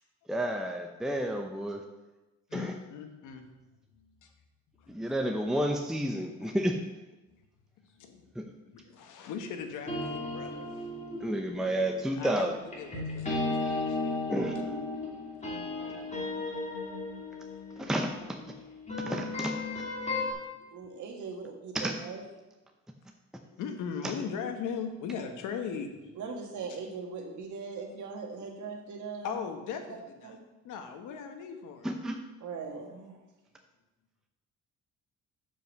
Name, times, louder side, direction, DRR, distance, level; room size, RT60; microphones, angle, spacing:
voice 1, 0.3-1.8 2.5-2.7 4.9-6.8 8.4-8.5 11.2-12.5 14.3-14.5 17.8-18.4 19.0-19.5 21.7-21.9 31.8-32.2, right 1 dB, ahead, 3 dB, 0.7 m, -30 dB
voice 2, 2.5-3.5 4.0-4.1 4.8-5.0 6.4-6.5 8.0-8.3 8.7-10.9 12.2-14.1 15.3-15.4 16.0-16.1 19.8-20.3 20.6-20.7 23.4-26.2 26.7-26.8 29.2-30.4 30.6-31.9, left 6 dB, 90° left, 5 dB, 1.2 m, -39 dB
sound 1, 9.9-20.3, left 2 dB, 25° left, 2.5 m, -35 dB
voice 3, 20.7-22.2 26.2-29.3 30.2-30.4 32.4-33.2, right 5 dB, 75° right, 2 dB, 1.7 m, -40 dB
7.0 x 5.4 x 6.5 m, 1.1 s
cardioid pair, 90°, 30 cm